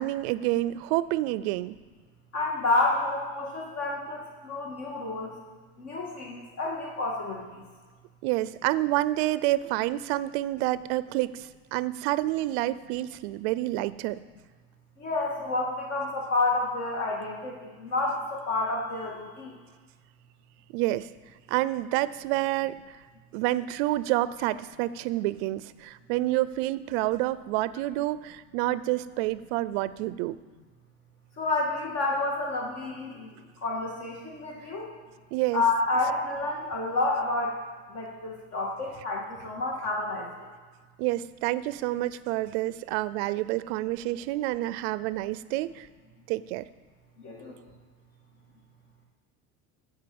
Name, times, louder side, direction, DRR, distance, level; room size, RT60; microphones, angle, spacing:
voice 1, 0.0-1.8 8.2-14.2 20.7-21.1 21.5-23.0 23.3-30.4 35.3-35.6 41.0-45.9 46.3-46.7, right 16 dB, 85° right, 16 dB, 0.5 m, -28 dB
voice 2, 2.3-5.3 5.8-7.6 15.0-19.6 31.4-34.9 35.5-37.6 37.9-40.3 47.2-47.5, left 2 dB, 50° left, -2 dB, 2.1 m, -29 dB
15.0 x 5.6 x 7.8 m, 1.5 s
cardioid pair, 155°, 31 cm